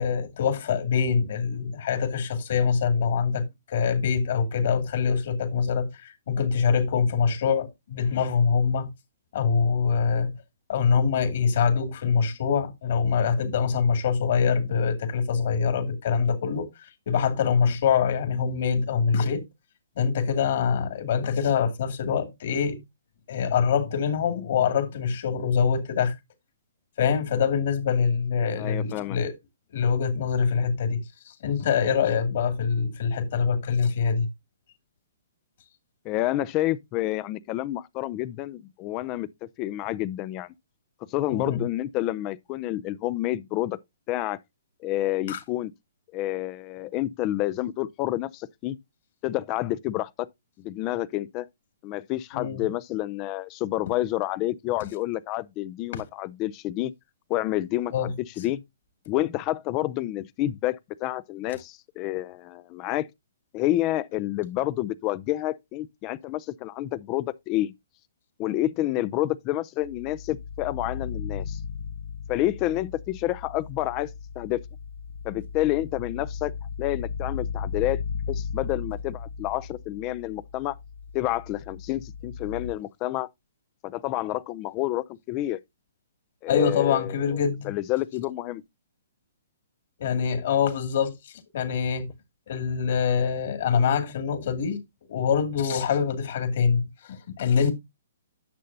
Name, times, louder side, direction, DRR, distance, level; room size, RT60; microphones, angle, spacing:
voice 1, 0.0-8.9 9.3-10.4 10.7-19.5 20.0-22.8 23.3-26.2 27.0-29.3 29.7-34.3 41.3-41.6 45.3-45.4 52.3-52.6 55.9-56.0 57.9-58.1 86.5-87.7 90.0-92.1 92.5-94.8 95.1-97.7, left 6 dB, 55° left, 2.3 m, -24 dB
voice 2, 28.6-29.2 36.0-39.3 39.6-40.5 41.1-43.8 44.1-44.4 44.8-45.7 46.1-48.8 49.2-50.3 50.6-51.5 51.8-56.9 57.3-58.6 59.1-63.1 63.5-67.7 68.4-71.6 72.3-74.1 74.4-74.6 75.2-76.5 76.8-78.0 78.3-80.8 81.1-83.3 83.8-85.6 86.4-87.1 87.6-88.6, left 15 dB, 30° left, 0.4 m, -29 dB
sound 1, 69.8-82.7, left 6 dB, 85° left, 0.8 m, -36 dB
10.0 x 6.5 x 2.7 m
hypercardioid pair, 145°, 0 cm